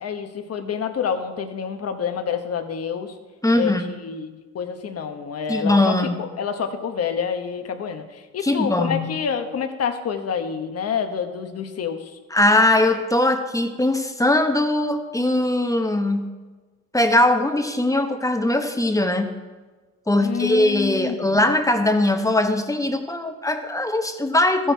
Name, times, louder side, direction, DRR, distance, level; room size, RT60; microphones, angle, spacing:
voice 1, 0.0-3.1 3.5-12.1 20.2-21.4, left 7 dB, 55° left, 7 dB, 1.1 m, -28 dB
voice 2, 3.4-3.9 5.5-6.2 8.4-9.1 12.3-16.3 16.9-19.4 20.1-24.7, left 1 dB, 10° left, 6 dB, 1.0 m, -20 dB
14.0 x 6.4 x 4.6 m, 1.3 s
cardioid pair, 90°, 30 cm